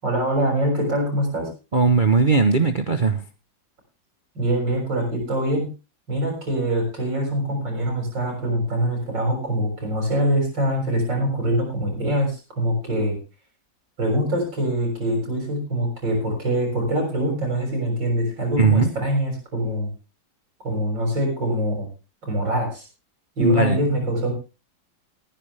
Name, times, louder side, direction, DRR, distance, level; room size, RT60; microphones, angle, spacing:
voice 1, 0.0-1.5 4.4-5.7 6.1-13.2 14.0-19.9 20.6-21.9 22.2-22.9 23.4-24.3, right 1 dB, 85° right, 2 dB, 7.2 m, -24 dB
voice 2, 1.7-3.2 18.6-18.9 23.4-23.8, right 4 dB, 35° right, 7 dB, 0.9 m, -18 dB
19.5 x 10.5 x 3.4 m, 0.31 s
omnidirectional pair, 1.9 m